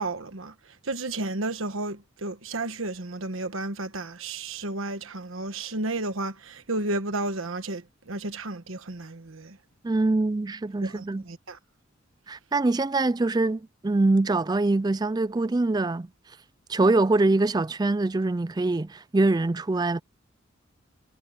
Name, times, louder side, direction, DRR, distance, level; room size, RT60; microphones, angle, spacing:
voice 1, 0.0-9.6 10.8-11.6, right 2 dB, 80° right, 1.3 m, -32 dB
voice 2, 9.8-11.2 12.3-16.1 16.7-20.0, right 2 dB, 20° right, 0.3 m, -24 dB
head